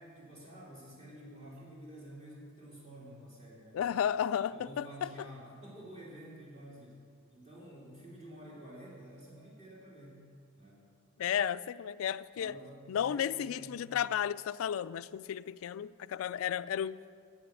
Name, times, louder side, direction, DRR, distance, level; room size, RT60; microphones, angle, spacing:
voice 1, 0.0-3.8 4.5-7.0 7.3-10.2 10.6-10.8 12.3-13.8, right 1 dB, 35° right, -6 dB, 3.1 m, -50 dB
voice 2, 3.7-5.1 11.2-12.5 12.9-17.0, left 9 dB, 75° left, 16 dB, 0.3 m, -33 dB
11.0 x 8.6 x 8.3 m, 2.3 s
head